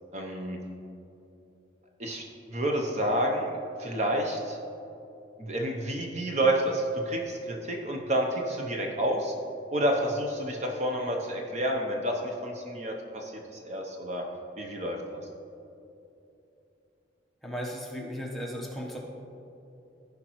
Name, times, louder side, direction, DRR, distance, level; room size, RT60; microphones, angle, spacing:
voice 1, 0.1-0.6 2.0-2.2 2.5-3.5 3.8-4.6 5.4-9.3 9.7-14.2 14.6-15.2, right 1 dB, 35° right, 1 dB, 0.7 m, -29 dB
voice 2, 17.4-19.0, equal, ahead, -3 dB, 1.0 m, -36 dB
15.0 x 5.1 x 3.0 m, 2.9 s
head